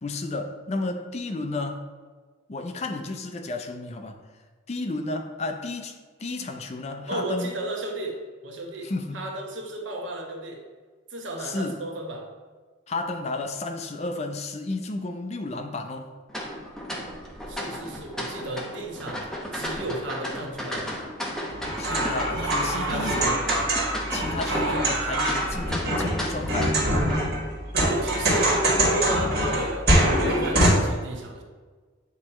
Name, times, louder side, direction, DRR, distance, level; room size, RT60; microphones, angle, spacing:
voice 1, 0.0-1.8 2.5-4.2 4.7-7.5 8.8-9.3 11.4-11.8 12.9-16.1 21.8-23.4 24.1-26.8, left 2 dB, 35° left, 6 dB, 0.4 m, -32 dB
voice 2, 7.1-10.6 11.1-12.3 17.5-19.3 19.5-20.9 22.4-23.4 24.5-24.9 27.8-31.4, right 1 dB, 70° right, 1 dB, 1.0 m, -34 dB
sound 1, 16.3-27.1, equal, 5° left, 0.7 m, -34 dB
sound 2, 21.5-30.7, right 1 dB, 55° right, 1.8 m, -24 dB
8.1 x 3.0 x 4.2 m, 1.4 s
head